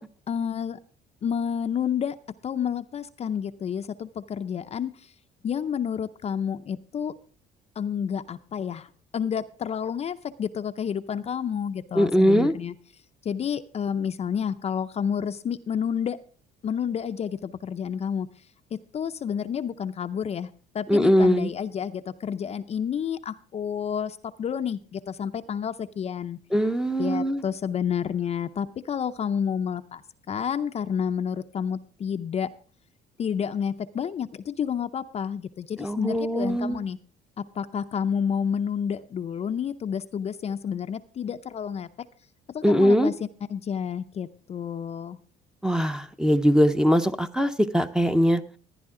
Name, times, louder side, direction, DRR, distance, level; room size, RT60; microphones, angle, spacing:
voice 1, 0.3-0.8 1.2-2.2 2.4-4.9 5.4-7.1 7.8-8.9 9.1-12.7 13.2-16.2 16.6-18.3 18.7-20.5 20.7-26.4 27.0-32.5 33.2-37.0 37.4-41.9 42.5-43.1 43.5-45.2, left 7 dB, 40° left, 9 dB, 0.5 m, -30 dB
voice 2, 11.9-12.5 20.9-21.5 26.5-27.4 35.8-36.8 42.6-43.1 45.6-48.4, equal, 5° right, 9 dB, 0.7 m, -21 dB
15.0 x 10.5 x 3.7 m, 0.41 s
cardioid pair, 110°, 17 cm